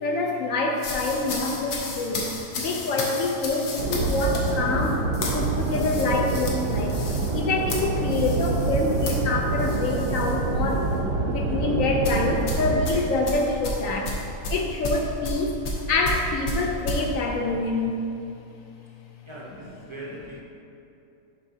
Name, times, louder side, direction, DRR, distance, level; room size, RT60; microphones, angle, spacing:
voice 1, 0.0-2.3 2.6-5.1 5.3-7.0 7.3-10.9 11.3-14.2 14.5-15.6 15.9-18.0, left 3 dB, 70° left, 2 dB, 0.9 m, -26 dB
sound 1, 0.8-10.4 10.7-11.0 12.0-17.0, left 1 dB, 85° left, 1.4 m, -33 dB
sound 2, 3.8-12.8, right 3 dB, 90° right, 1.1 m, -26 dB
voice 2, 19.3-20.4, right 1 dB, 50° right, -6 dB, 0.3 m, -40 dB
7.1 x 5.6 x 2.7 m, 2.8 s
omnidirectional pair, 1.6 m